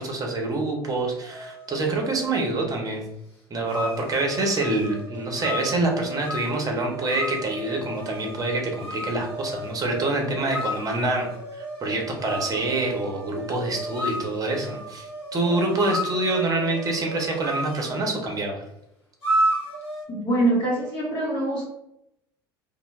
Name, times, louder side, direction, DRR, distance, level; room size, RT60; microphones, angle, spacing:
voice 1, 0.0-3.0 3.5-11.3 11.5-15.1 15.3-18.6, right 2 dB, 30° right, 1 dB, 0.7 m, -26 dB
sound 1, 1.2-2.5 3.6-18.1 19.2-20.0, right 1 dB, 85° left, 0.9 m, -33 dB
voice 2, 20.1-21.7, right 1 dB, 40° left, -6 dB, 0.8 m, -24 dB
2.1 x 2.0 x 3.1 m, 0.81 s
figure-of-eight pair, 65°, 13 cm